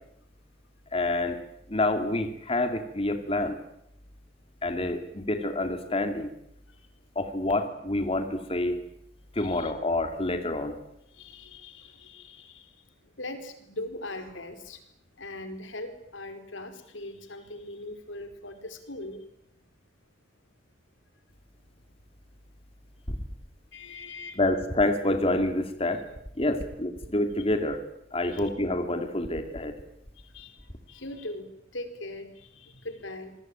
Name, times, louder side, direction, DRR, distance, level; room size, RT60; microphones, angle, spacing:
voice 1, 0.9-1.4 1.7-3.6 4.6-6.3 7.2-8.8 9.3-10.8 23.1-23.2 24.4-26.0 26.4-27.8 28.1-29.7, left 2 dB, 30° left, 6 dB, 2.5 m, -27 dB
voice 2, 9.4-9.7 11.1-14.8 15.2-19.2 23.7-24.4 26.5-26.6 28.2-28.5 30.1-33.4, left 2 dB, 85° left, 8 dB, 4.6 m, -41 dB
27.5 x 21.5 x 9.1 m, 0.78 s
head